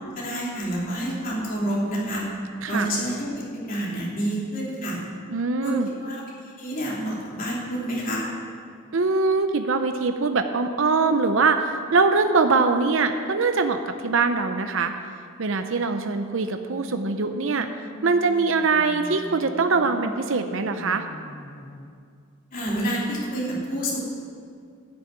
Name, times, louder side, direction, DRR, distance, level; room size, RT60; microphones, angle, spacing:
voice 1, 0.0-2.2 2.7-5.0 5.6-8.2 22.5-24.0, right 1 dB, 40° left, -6 dB, 3.3 m, -28 dB
voice 2, 5.3-5.9 8.9-14.9 15.4-17.7 18.0-21.0, right 4 dB, 65° right, 7 dB, 0.6 m, -22 dB
sound 1, 16.5-21.9, left 1 dB, 20° left, 0.6 m, -42 dB
12.5 x 6.9 x 9.0 m, 2.3 s
head